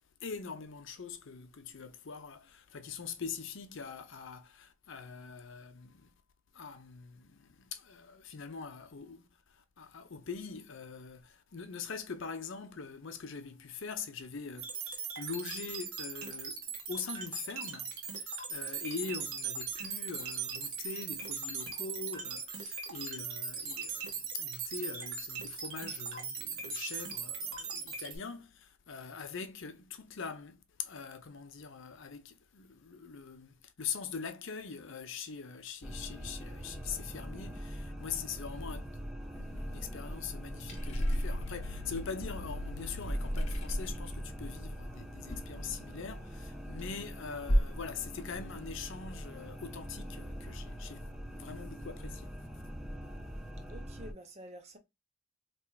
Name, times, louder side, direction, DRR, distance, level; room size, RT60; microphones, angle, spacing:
voice 1, 0.2-6.1 6.5-9.2 9.5-16.6 16.9-52.4, left 5 dB, 60° left, 0.6 m, -43 dB
sound 1, 14.6-28.2, right 5 dB, 75° right, 1.3 m, -39 dB
sound 2, 35.8-54.1, equal, ahead, 0.5 m, -43 dB
sound 3, 39.3-46.3 46.6-47.1 47.5-47.9 48.2-49.4, equal, 30° left, 0.9 m, -35 dB
voice 2, 53.7-54.8, right 1 dB, 30° right, 0.8 m, -49 dB
4.3 x 3.0 x 2.3 m
head